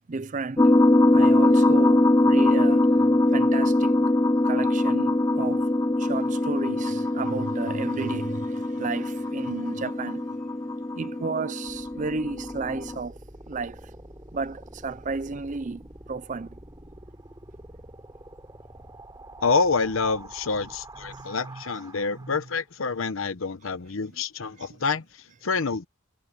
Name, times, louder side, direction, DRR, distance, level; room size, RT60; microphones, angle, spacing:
voice 1, 0.1-0.7 1.1-4.0 4.4-10.6 10.9-13.2 13.5-13.9 14.3-16.6 21.1-21.6 22.2-22.4 24.1-24.2 24.6-24.8, right 4 dB, 40° right, 0.5 m, -33 dB
sound 1, 0.6-13.0, left 1 dB, 15° left, 0.6 m, -22 dB
sound 2, 11.6-22.6, right 1 dB, 20° right, 3.2 m, -46 dB
voice 2, 19.4-25.9, left 4 dB, 75° left, 0.9 m, -27 dB
head